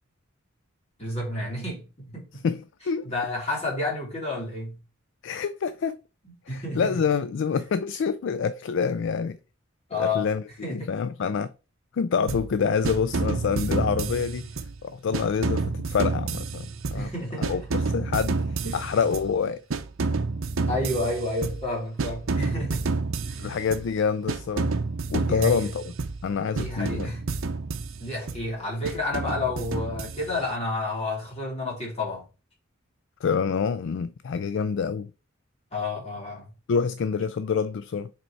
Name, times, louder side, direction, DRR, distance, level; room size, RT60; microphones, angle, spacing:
voice 1, 1.0-2.5 3.0-4.8 6.2-7.0 9.9-10.3 10.6-10.9 16.9-17.7 18.6-19.1 20.7-22.8 23.3-23.5 25.2-25.7 26.5-27.2 28.0-32.3 35.7-36.5, left 2 dB, 30° left, 3.1 m, -30 dB
voice 2, 2.4-3.1 5.2-6.0 6.5-9.4 10.0-11.5 11.9-14.5 14.8-17.1 17.4-19.6 23.4-24.7 25.1-25.9 26.2-27.1 33.2-35.1 36.7-38.1, left 6 dB, 60° left, 0.4 m, -27 dB
sound 1, 12.3-12.6 12.8-14.8 15.1-17.2 17.4-19.4 19.7-21.7 22.0-23.9 24.3-26.3 26.6-28.5 28.8-30.5, right 3 dB, 70° right, 0.7 m, -29 dB
5.2 x 4.4 x 4.6 m
head